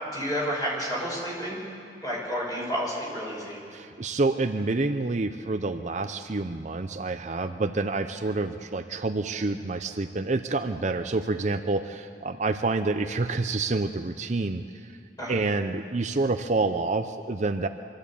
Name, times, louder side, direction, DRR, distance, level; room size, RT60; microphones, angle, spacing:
voice 1, 0.1-1.6 2.0-3.6 15.2-15.4, equal, 20° left, -4 dB, 5.7 m, -30 dB
voice 2, 3.7-14.6 15.3-17.7, right 3 dB, 40° right, 7 dB, 0.6 m, -28 dB
24.5 x 13.0 x 8.5 m, 2.3 s
head